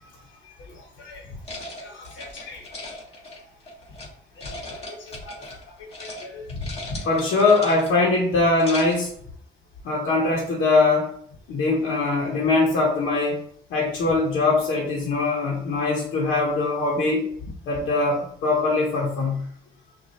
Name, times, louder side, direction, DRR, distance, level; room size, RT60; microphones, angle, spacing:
sound 1, 1.4-4.1 4.4-5.6 5.9-6.2 6.5-8.1 8.4-9.1, left 1 dB, 30° left, 1.5 m, -38 dB
voice 1, 1.8-2.6 4.4-5.4 6.0-7.0, left 3 dB, 70° left, 1.3 m, -38 dB
voice 2, 7.0-9.1 9.8-11.1 11.5-13.4 13.7-17.2 17.7-19.4, left 3 dB, 90° left, 1.0 m, -22 dB
6.0 x 2.5 x 2.8 m
cardioid pair, 90°, 20 cm